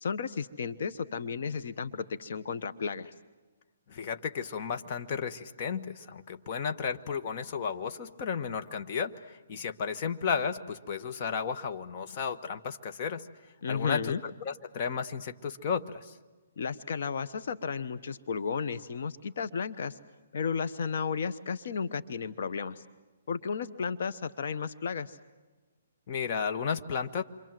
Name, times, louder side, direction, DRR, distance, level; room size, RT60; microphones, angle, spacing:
voice 1, 0.0-3.1 13.6-14.2 16.6-20.0 20.3-22.8 23.3-25.2, left 6 dB, 60° left, 11 dB, 1.1 m, -33 dB
voice 2, 3.9-13.3 13.7-16.2 26.1-27.2, left 6 dB, 35° left, 7 dB, 1.3 m, -33 dB
28.5 x 25.5 x 7.7 m, 1.2 s
hypercardioid pair, 160°, 0 cm